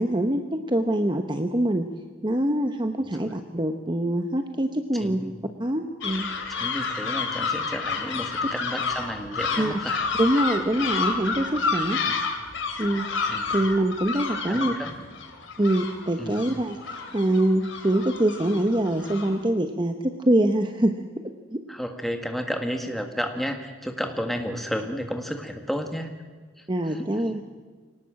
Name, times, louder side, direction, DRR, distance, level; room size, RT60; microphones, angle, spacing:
voice 1, 0.0-1.9 2.2-5.2 5.6-6.3 9.6-9.7 10.2-12.0 12.8-13.1 13.5-14.7 15.6-16.8 17.1-20.9 21.5-21.6 26.7-27.4, right 1 dB, 20° right, 6 dB, 0.9 m, -24 dB
voice 2, 3.0-3.3 4.9-5.4 6.6-10.1 12.0-12.2 13.3-13.5 14.5-14.9 16.2-16.4 21.7-26.1 26.6-27.4, equal, ahead, 4 dB, 1.7 m, -32 dB
sound 1, 6.0-19.4, left 4 dB, 60° left, 3.1 m, -30 dB
23.5 x 18.5 x 7.6 m, 1.5 s
head